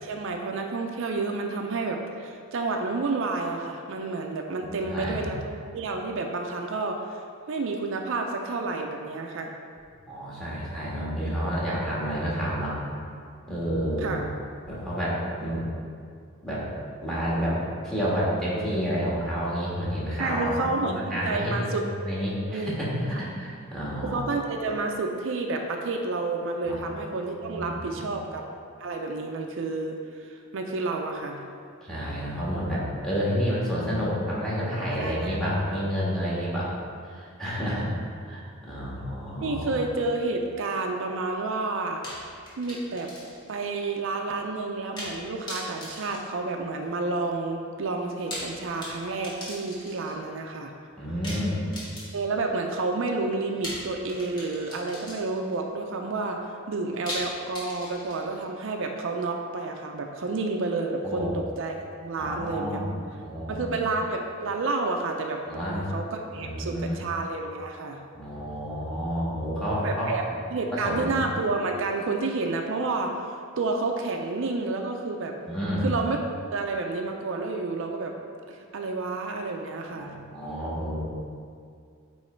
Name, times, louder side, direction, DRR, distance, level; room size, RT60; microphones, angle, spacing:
voice 1, 0.0-7.2 7.5-9.5 14.0-14.2 20.2-21.8 22.5-22.8 24.0-28.5 28.8-31.4 34.9-35.5 39.4-43.1 43.5-50.7 52.1-62.9 63.5-65.4 65.7-68.0 69.8-70.2 70.5-75.3 75.8-76.2 76.5-78.1 78.5-80.1, right 3 dB, 65° right, 3 dB, 0.5 m, -30 dB
voice 2, 4.6-5.4 10.1-12.7 13.5-14.2 14.7-15.6 16.4-16.6 17.0-24.2 26.6-26.8 27.4-28.2 31.8-36.7 37.0-37.9 38.2-39.8 51.0-51.7 61.0-61.3 62.2-62.9 63.2-63.9 65.5-65.8 66.3-67.0 68.1-70.1 70.7-71.1 75.4-75.9 79.9-81.0, equal, ahead, -7 dB, 1.5 m, -30 dB
sound 1, 42.0-43.6 43.8-43.9 45.0-45.2 45.5-47.0 48.1-50.2 51.2-52.4 53.6-55.5 57.1-58.4, equal, 20° left, 1.5 m, -39 dB
8.0 x 3.1 x 4.4 m, 2.3 s
head